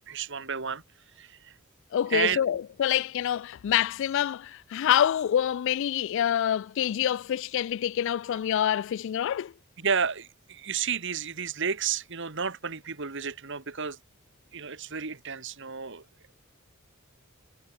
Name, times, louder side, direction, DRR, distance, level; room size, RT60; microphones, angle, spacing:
voice 1, 0.1-0.8 1.2-1.5 2.1-2.4 9.8-14.0 14.5-16.0, right 6 dB, 60° right, 2.3 m, -31 dB
voice 2, 1.9-9.5, left 10 dB, 65° left, 0.3 m, -26 dB
head